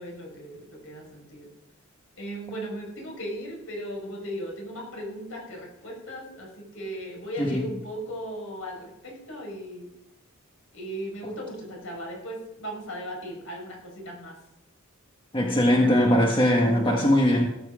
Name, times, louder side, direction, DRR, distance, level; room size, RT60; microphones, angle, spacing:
voice 1, 0.0-1.5 2.2-9.9 10.7-14.3, equal, 65° left, 0 dB, 6.0 m, -37 dB
voice 2, 15.3-17.5, equal, 25° left, 0 dB, 1.6 m, -20 dB
18.0 x 9.4 x 5.1 m, 0.86 s
head